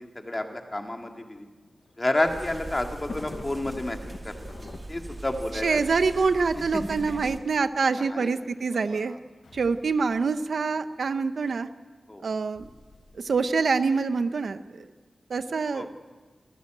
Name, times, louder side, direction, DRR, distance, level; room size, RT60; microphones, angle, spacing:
voice 1, 0.0-1.5 2.0-4.0 4.2-4.4 4.9-5.8 6.7-6.8 7.9-9.2 12.1-12.2 15.7-15.9, left 1 dB, 20° left, 4 dB, 2.2 m, -30 dB
Thunder, 1.6-7.0 7.8-7.9 8.1-8.2 9.3-9.6, left 3 dB, 55° left, 1.1 m, -45 dB
sound 1, 2.2-7.4, right 2 dB, 35° right, 2.5 m, -41 dB
sound 2, 2.3-3.9 5.3-6.9 9.4-10.3 12.5-13.7, left 2 dB, 80° left, 7.9 m, -53 dB
voice 2, 5.6-9.2 9.5-11.7 12.2-12.7 13.1-14.9 15.3-15.9, right 4 dB, 75° right, 11 dB, 0.8 m, -25 dB
26.0 x 14.5 x 9.1 m, 1.4 s
wide cardioid pair, 110°, 0 cm